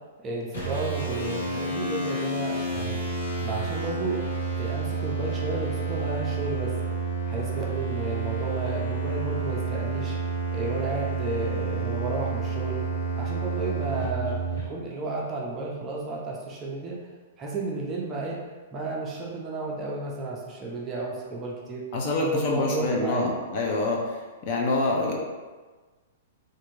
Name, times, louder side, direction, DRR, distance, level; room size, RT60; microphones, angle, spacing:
voice 1, 0.2-3.0 3.4-4.2 4.6-6.7 7.3-10.2 10.5-12.8 13.2-14.4 14.7-17.0 17.4-18.4 18.7-21.8 22.2-23.3, right 2 dB, 20° right, -3 dB, 0.5 m, -32 dB
sound 1, 0.5-14.6, right 4 dB, 90° left, 1.5 m, -30 dB
voice 2, 21.9-24.0 24.4-25.2, left 2 dB, 35° left, -1 dB, 0.6 m, -26 dB
3.4 x 2.5 x 3.1 m, 1.3 s
hypercardioid pair, 165°, 0 cm